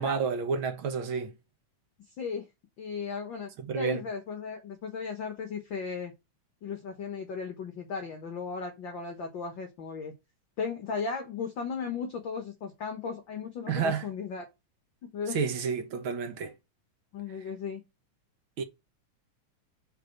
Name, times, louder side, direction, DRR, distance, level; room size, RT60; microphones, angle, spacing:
voice 1, 0.0-1.3 3.6-4.0 13.7-14.1 15.3-16.5 18.6-18.7, right 5 dB, 60° right, 1.4 m, -30 dB
voice 2, 2.2-2.5 2.8-3.5 3.7-6.1 6.6-10.1 10.6-14.4 15.1-15.4 17.1-17.8, left 5 dB, 60° left, 1.3 m, -36 dB
6.3 x 4.1 x 6.3 m
omnidirectional pair, 3.6 m